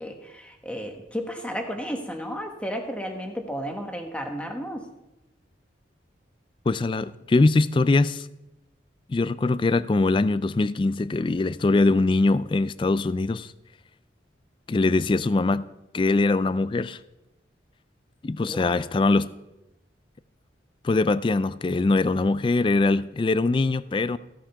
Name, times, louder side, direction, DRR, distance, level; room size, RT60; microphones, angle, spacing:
voice 1, 0.0-4.9 18.5-18.8, equal, 5° left, 1.3 m, -33 dB
voice 2, 6.7-8.3 9.1-13.5 14.7-15.7 15.9-17.0 18.2-19.3 20.8-24.2, left 3 dB, 25° left, 0.3 m, -22 dB
15.0 x 7.3 x 5.7 m
head